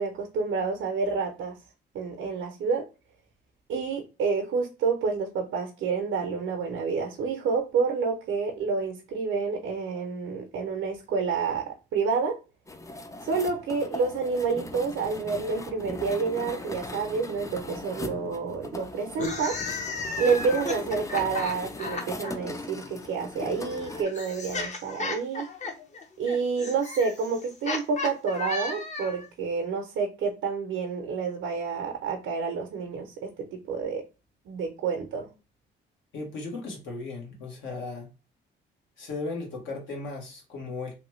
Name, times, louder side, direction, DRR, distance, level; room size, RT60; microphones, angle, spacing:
voice 1, 0.0-1.5 1.9-2.9 3.7-12.4 13.2-19.6 20.2-25.5 26.2-34.1 34.5-35.3, right 5 dB, 75° right, 0.7 m, -29 dB
sound 1, 12.7-24.0, left 2 dB, 15° left, 0.4 m, -39 dB
sound 2, 19.1-22.3 23.4-29.3, left 3 dB, 35° left, 0.8 m, -34 dB
voice 2, 36.1-38.1 39.0-40.9, left 3 dB, 75° left, 1.3 m, -36 dB
3.1 x 2.2 x 3.1 m
cardioid pair, 90°, 20 cm